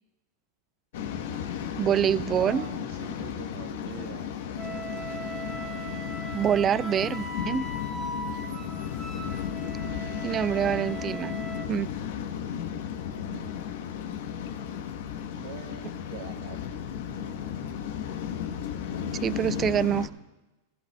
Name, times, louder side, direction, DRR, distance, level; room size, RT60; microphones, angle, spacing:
Waves surf, 0.9-20.1, left 8 dB, 70° left, 1.0 m, -34 dB
voice 1, 1.8-2.6 6.3-7.6 10.2-11.3 11.7-11.9 19.2-20.1, right 9 dB, 25° right, 18 dB, 0.3 m, -25 dB
voice 2, 2.4-4.3 8.4-8.9 12.0-12.4 13.3-13.6 15.4-16.9 19.2-20.2, right 6 dB, 75° right, 3 dB, 2.4 m, -45 dB
Wind instrument woodwind instrument, 4.6-11.7, right 2 dB, ahead, 1.8 m, -39 dB
19.5 x 16.0 x 2.3 m, 1.1 s
supercardioid pair, 135°, 0 cm